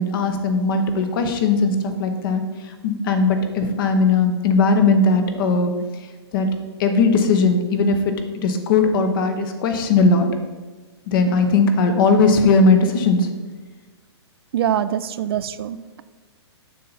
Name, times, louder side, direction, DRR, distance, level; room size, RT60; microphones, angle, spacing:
voice 1, 0.0-2.4 2.8-5.7 6.3-6.5 6.8-8.1 8.4-10.3 11.1-13.3, left 3 dB, 50° left, 6 dB, 1.0 m, -18 dB
voice 2, 14.5-16.0, right 10 dB, 55° right, 14 dB, 0.4 m, -24 dB
7.4 x 5.8 x 4.0 m, 1.3 s
hypercardioid pair, 135°, 15 cm